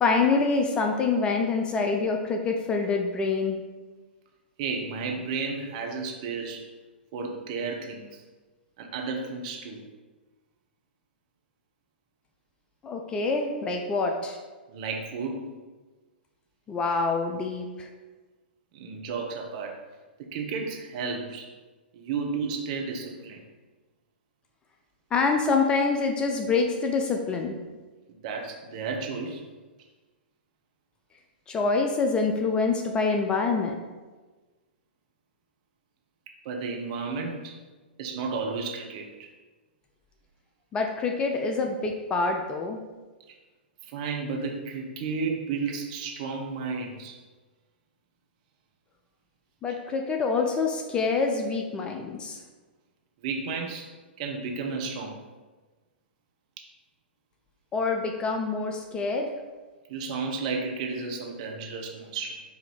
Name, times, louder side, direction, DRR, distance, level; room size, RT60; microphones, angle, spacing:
voice 1, 0.0-3.6 12.8-14.4 16.7-17.9 25.1-27.5 31.5-33.7 40.7-42.8 49.6-52.4 57.7-59.3, left 4 dB, 15° left, 3 dB, 0.3 m, -26 dB
voice 2, 4.6-6.7 7.1-8.2 8.8-9.8 14.7-15.5 18.7-19.8 20.3-21.5 21.9-23.4 28.2-29.4 36.4-37.6 38.0-39.3 43.8-47.2 53.2-53.9 54.2-55.2 59.9-62.4, right 4 dB, 40° right, 2 dB, 0.7 m, -32 dB
4.7 x 2.6 x 4.3 m, 1.3 s
figure-of-eight pair, 110°, 6 cm